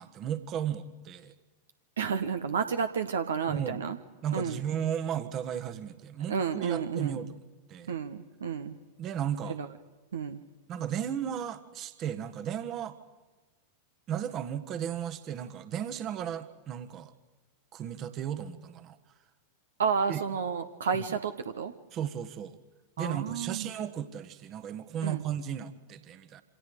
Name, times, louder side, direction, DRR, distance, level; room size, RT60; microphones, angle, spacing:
voice 1, 0.0-1.3 3.5-3.8 4.2-7.4 7.7-8.0 9.0-9.6 10.7-13.0 14.1-17.1 17.7-19.0 20.1-20.2 20.9-21.0 21.9-22.6 23.0-26.4, right 9 dB, 35° right, 9 dB, 1.5 m, -35 dB
voice 2, 2.0-4.0 4.3-4.6 6.3-7.2 7.9-8.7 9.6-9.7 10.1-10.4 19.8-21.7 23.0-23.7 25.0-25.2, right 6 dB, 65° right, 8 dB, 1.2 m, -31 dB
28.0 x 26.0 x 5.0 m, 1.3 s
figure-of-eight pair, 90°, 0 cm